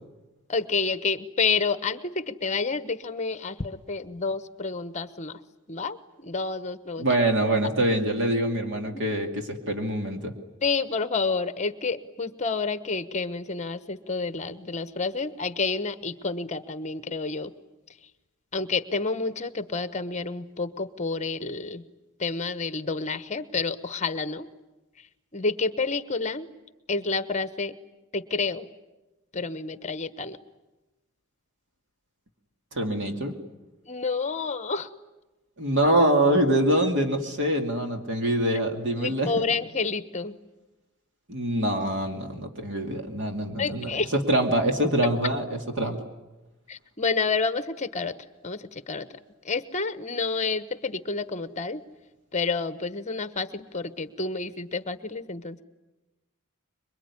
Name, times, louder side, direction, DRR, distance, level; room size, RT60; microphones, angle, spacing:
voice 1, 0.5-5.4 5.7-7.2 8.7-9.0 10.6-17.5 18.5-21.8 22.2-24.5 25.3-26.5 26.9-27.7 28.1-28.7 29.3-30.4 33.9-34.9 39.0-40.3 43.6-44.1 46.7-48.1 48.4-49.1 49.4-51.8 52.3-55.6, left 4 dB, 30° left, 12 dB, 1.1 m, -29 dB
voice 2, 7.0-10.3 32.7-33.3 35.6-39.5 41.3-46.0, right 1 dB, 55° right, 4 dB, 2.5 m, -25 dB
25.5 x 23.0 x 9.8 m, 1.1 s
head